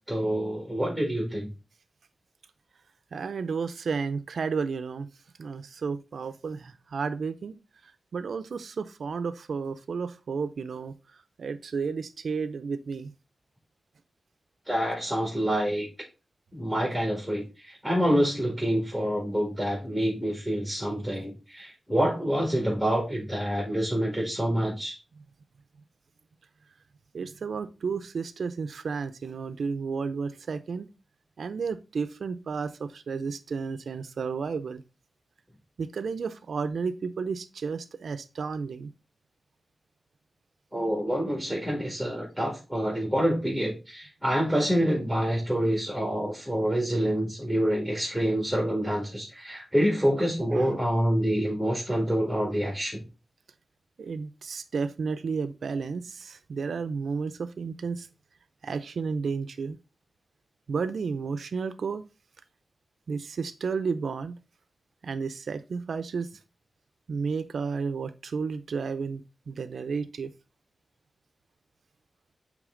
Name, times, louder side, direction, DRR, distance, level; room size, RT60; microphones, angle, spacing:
voice 1, 0.1-1.5 14.7-15.9 16.5-25.0 40.7-53.0, equal, 5° left, -1 dB, 1.9 m, -27 dB
voice 2, 3.1-5.1 5.4-7.5 7.8-13.1 27.1-30.9 31.4-34.8 35.8-38.9 50.4-50.7 54.0-58.1 58.6-59.8 60.7-62.0 63.1-64.4 65.0-66.3 67.1-69.2 69.5-70.3, right 5 dB, 85° right, 10 dB, 0.4 m, -32 dB
8.3 x 3.3 x 3.7 m, 0.30 s
wide cardioid pair, 100°, 0 cm